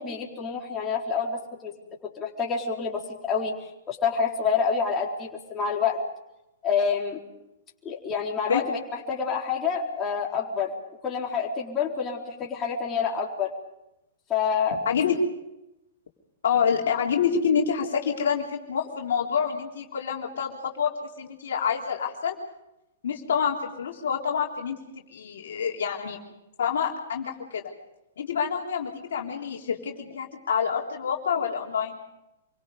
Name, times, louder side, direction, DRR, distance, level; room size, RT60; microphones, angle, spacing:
voice 1, 0.0-1.8 2.2-6.0 6.6-7.2 7.8-10.7 11.0-13.5 14.3-14.8, left 6 dB, 20° left, -2 dB, 4.2 m, -27 dB
voice 2, 14.7-15.1 16.4-22.3 23.0-24.8 25.1-26.2 26.6-27.7 28.2-32.0, left 7 dB, 60° left, 0 dB, 3.5 m, -27 dB
27.5 x 24.0 x 5.4 m, 0.91 s
figure-of-eight pair, 110°, 0 cm